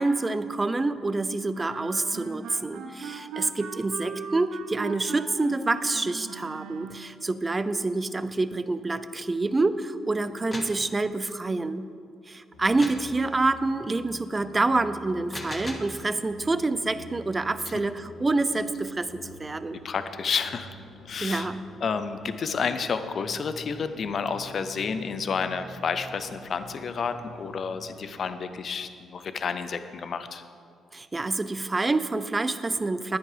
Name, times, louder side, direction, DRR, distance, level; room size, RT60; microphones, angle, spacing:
voice 1, 0.0-11.9 12.3-19.8 21.2-21.6 30.9-33.2, right 3 dB, 20° right, 13 dB, 0.5 m, -27 dB
sound 1, 1.5-7.2, right 5 dB, 85° right, 1.0 m, -39 dB
sound 2, 10.3-10.8 12.8-13.1 15.1-16.0, left 1 dB, 20° left, 1.4 m, -38 dB
sound 3, 12.5-28.1, left 1 dB, 85° left, 1.8 m, -47 dB
voice 2, 19.8-20.7 21.1-21.5 21.8-30.4, left 5 dB, 50° left, 10 dB, 0.6 m, -30 dB
10.5 x 10.0 x 5.1 m, 2.3 s
cardioid pair, 90°, 0 cm